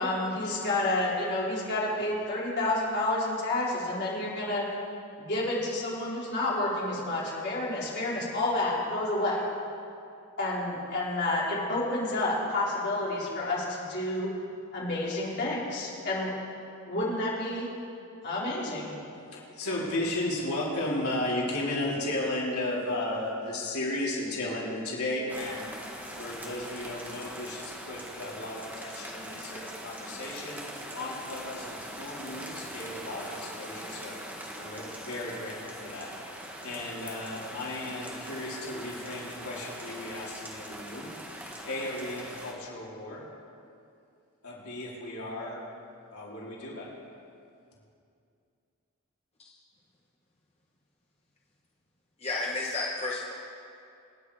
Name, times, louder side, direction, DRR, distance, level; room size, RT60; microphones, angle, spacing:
voice 1, 0.0-4.7 5.2-9.4 10.4-14.3 14.7-16.3 16.9-17.7 18.2-18.9, left 2 dB, 50° left, -6 dB, 4.3 m, -29 dB
voice 2, 19.3-25.9 26.2-30.7 30.9-34.2 34.6-41.1 41.6-43.3 44.4-45.6 46.1-46.9, left 1 dB, 75° left, -5 dB, 4.0 m, -34 dB
sound 1, 25.3-42.5, equal, 10° right, 1.6 m, -42 dB
voice 3, 52.2-53.3, left 2 dB, 30° left, -3 dB, 1.2 m, -32 dB
26.5 x 9.5 x 5.0 m, 2.5 s
head